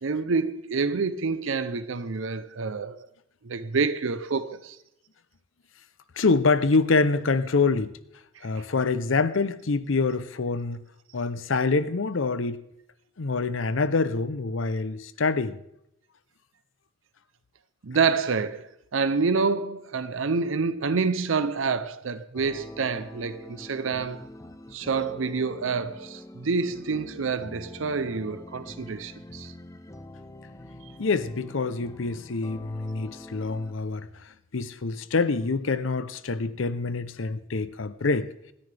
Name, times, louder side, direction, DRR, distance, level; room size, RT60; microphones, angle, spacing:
voice 1, 0.0-3.1 3.4-4.8 8.3-8.7 17.8-24.3 24.7-29.5, right 4 dB, 75° right, 0.6 m, -28 dB
voice 2, 6.2-7.9 8.4-10.8 11.1-12.6 13.2-15.6 31.0-34.1 34.5-38.3, left 4 dB, 75° left, 0.7 m, -25 dB
sound 1, 22.3-33.7, left 1 dB, 15° left, 0.7 m, -45 dB
26.5 x 10.0 x 3.4 m
head